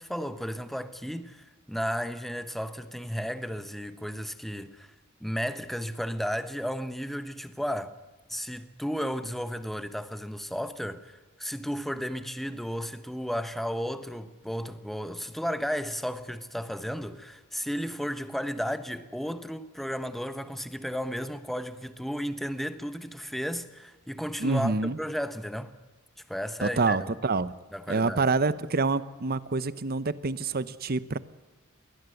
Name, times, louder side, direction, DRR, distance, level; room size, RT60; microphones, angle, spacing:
voice 1, 0.0-4.9 5.2-7.9 8.3-24.7 25.0-25.7 26.3-27.1 27.7-28.3, equal, ahead, 1.0 m, -33 dB
voice 2, 24.4-25.0 26.6-27.5 27.9-31.2, right 3 dB, 45° right, 0.9 m, -27 dB
22.5 x 18.0 x 7.9 m
head